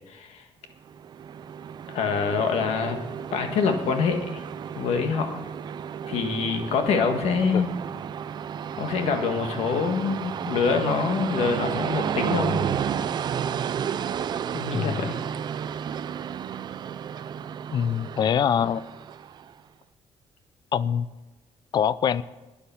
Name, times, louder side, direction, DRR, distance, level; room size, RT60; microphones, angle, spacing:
voice 1, 0.1-0.4 1.9-3.0 3.3-4.4 4.8-5.4 6.1-7.7 8.8-12.7 14.5-15.2, left 5 dB, 90° left, 5 dB, 1.6 m, -25 dB
Train, 0.9-19.5, right 8 dB, 45° right, 0.4 m, -32 dB
voice 2, 14.7-15.1 17.7-18.9 20.7-21.1 21.7-22.2, left 8 dB, 45° left, 17 dB, 0.4 m, -24 dB
10.0 x 10.0 x 7.0 m, 1.1 s
cardioid pair, 165°, 10 cm